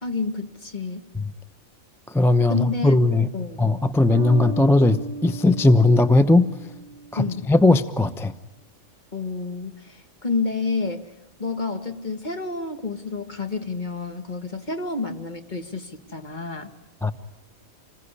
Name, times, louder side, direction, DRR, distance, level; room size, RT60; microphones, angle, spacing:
voice 1, 0.0-1.1 2.5-3.0 3.3-3.6 7.2-7.5 9.1-11.1 11.4-16.7, left 4 dB, 35° left, 7 dB, 1.9 m, -29 dB
voice 2, 2.1-3.3 3.6-6.5 7.1-8.3 17.0-17.1, left 2 dB, ahead, 11 dB, 0.6 m, -18 dB
Bass guitar, 4.1-7.6, right 3 dB, 40° right, 2.8 m, -36 dB
27.5 x 20.5 x 9.9 m, 0.99 s
omnidirectional pair, 1.5 m